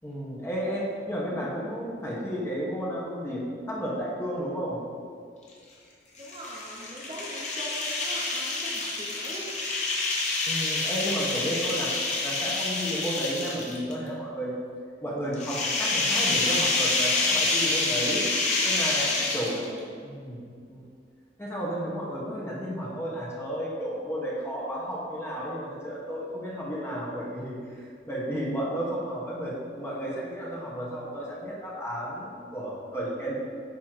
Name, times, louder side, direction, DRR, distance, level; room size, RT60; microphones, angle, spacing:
voice 1, 0.0-3.4 3.7-4.8 10.4-11.9 12.2-14.5 15.0-18.2 18.6-19.6 20.0-20.9 21.4-33.3, equal, 15° left, -5 dB, 1.2 m, -32 dB
sound 1, 6.2-13.9 15.3-19.8, left 3 dB, 40° left, 0.9 m, -27 dB
voice 2, 6.2-9.5 18.9-20.0, right 1 dB, 30° right, -4 dB, 0.7 m, -41 dB
8.8 x 3.1 x 4.6 m, 2.2 s
head